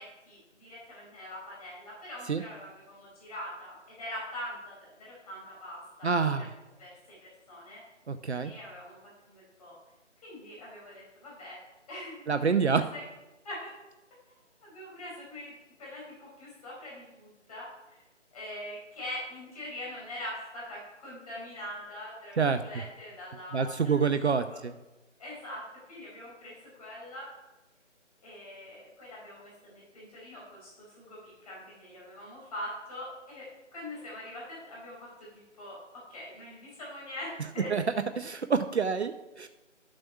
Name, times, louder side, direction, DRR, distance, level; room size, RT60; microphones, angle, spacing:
voice 1, 0.0-6.1 6.4-6.5 6.8-7.8 8.4-9.0 9.3-9.8 10.2-11.6 11.9-12.3 12.9-13.0 13.4-13.7 14.3-18.0 18.3-23.9 24.5-24.6 25.2-25.6 25.9-27.3 28.2-30.7 31.0-35.3 35.6-35.8 36.1-37.7, left 1 dB, 30° left, -5 dB, 4.5 m, -43 dB
voice 2, 6.0-6.5 8.1-8.5 12.3-12.8 22.4-22.6 23.5-24.7 37.7-37.8 38.2-39.5, right 5 dB, 60° right, 10 dB, 0.7 m, -27 dB
12.0 x 7.7 x 5.5 m, 1.1 s
figure-of-eight pair, 155°, 37 cm